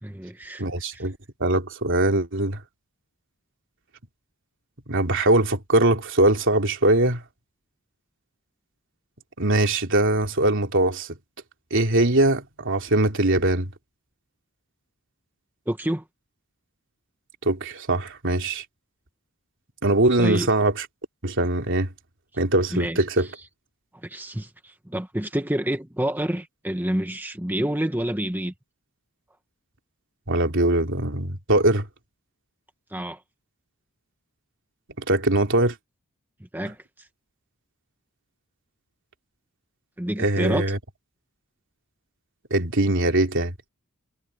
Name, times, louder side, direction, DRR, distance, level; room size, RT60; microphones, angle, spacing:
voice 1, 0.0-0.6 0.9-1.0 15.7-16.0 20.2-20.5 22.7-23.3 23.9-28.5 32.9-33.2 36.5-37.1 40.0-40.6, right 1 dB, 10° right, 1.3 m, -28 dB
voice 2, 0.6-2.6 4.9-7.2 9.4-11.1 11.7-13.7 17.4-18.6 19.8-20.9 21.2-21.9 22.4-23.3 30.3-31.9 35.0-35.7 40.2-40.8 42.5-43.5, right 2 dB, 60° right, 3.4 m, -21 dB
head